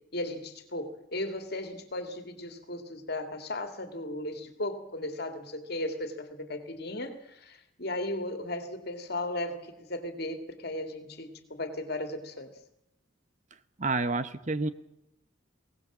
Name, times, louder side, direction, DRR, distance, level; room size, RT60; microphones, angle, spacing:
voice 1, 0.1-12.5, left 1 dB, 55° left, 7 dB, 2.5 m, -36 dB
voice 2, 13.8-14.7, right 3 dB, 35° right, 12 dB, 0.9 m, -29 dB
22.0 x 18.5 x 7.4 m, 0.85 s
head